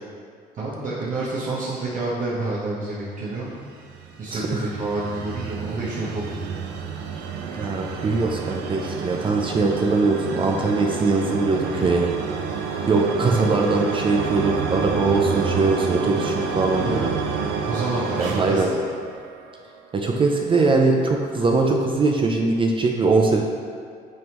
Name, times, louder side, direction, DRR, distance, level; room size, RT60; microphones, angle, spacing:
voice 1, 0.5-3.6 4.2-6.6 13.2-13.7 16.8-17.0 17.3-17.4 17.7-18.7, right 2 dB, 50° right, -8 dB, 1.1 m, -28 dB
sound 1, 3.5-19.6, right 6 dB, 85° right, 0.6 m, -29 dB
voice 2, 4.3-4.6 7.5-12.1 12.9-17.1 18.2-18.7 19.9-23.4, right 3 dB, 30° right, 1 dB, 0.5 m, -21 dB
9.3 x 3.5 x 3.0 m, 2.1 s
cardioid pair, 110°, 17 cm